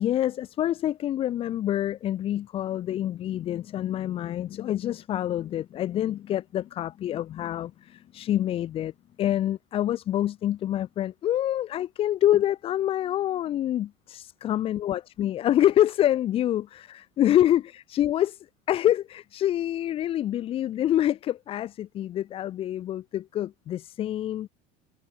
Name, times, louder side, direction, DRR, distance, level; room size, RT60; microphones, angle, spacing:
voice 1, 0.0-8.9 9.2-24.5, left 12 dB, 35° left, 4.8 m, -26 dB
cardioid pair, 165°, 16 cm